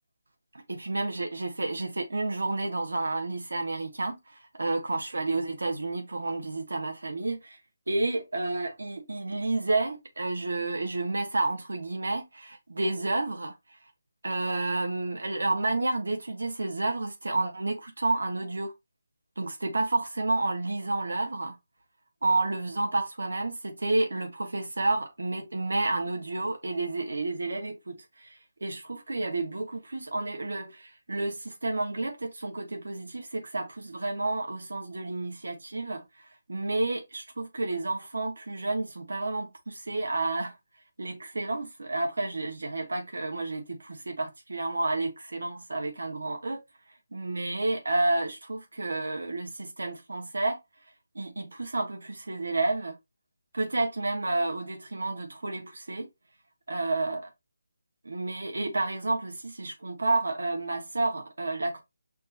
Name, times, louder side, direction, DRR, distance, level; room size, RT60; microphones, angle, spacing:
voice 1, 0.7-7.6 7.9-13.5 14.2-18.7 19.4-21.6 22.2-36.0 36.5-40.5 41.0-46.6 47.1-50.6 51.1-52.9 53.5-56.1 56.7-57.3 58.0-61.8, right 2 dB, 90° right, 1.2 m, -30 dB
6.3 x 2.7 x 2.7 m
hypercardioid pair, 170°, 0 cm